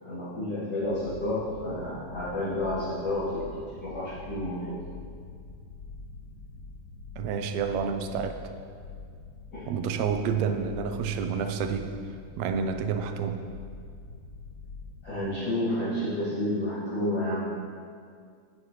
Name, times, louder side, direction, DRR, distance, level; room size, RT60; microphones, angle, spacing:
voice 1, 0.0-4.8 9.5-9.7 15.0-17.4, left 1 dB, 40° left, -16 dB, 3.1 m, -30 dB
sound 1, 0.8-15.1, left 3 dB, 65° left, 2.2 m, -45 dB
voice 2, 7.2-8.5 9.7-11.9 12.4-13.5, right 6 dB, 80° right, 6 dB, 1.8 m, -29 dB
9.5 x 9.0 x 3.2 m, 2.1 s
omnidirectional pair, 3.3 m